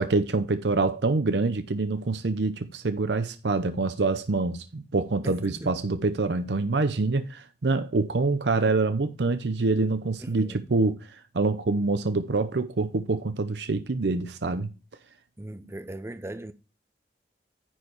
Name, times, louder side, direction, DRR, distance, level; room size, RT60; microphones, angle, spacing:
voice 1, 0.0-14.7, right 3 dB, 75° right, 0.7 m, -26 dB
voice 2, 5.2-5.8 10.2-10.7 15.4-16.5, right 1 dB, 15° right, 0.5 m, -38 dB
9.9 x 4.6 x 4.7 m
head